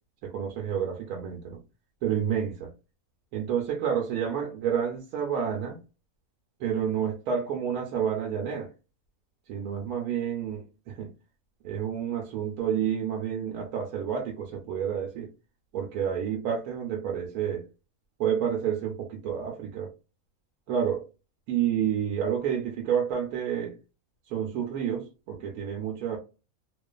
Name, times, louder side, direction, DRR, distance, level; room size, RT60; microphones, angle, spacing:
voice 1, 0.2-1.6 2.0-2.7 3.3-5.8 6.6-8.7 9.5-11.1 11.6-15.3 15.7-17.6 18.2-19.9 20.7-21.0 21.5-23.8 24.3-26.2, right 8 dB, 85° right, 1 dB, 1.1 m, -29 dB
2.5 x 2.3 x 2.2 m, 0.31 s
omnidirectional pair, 1.5 m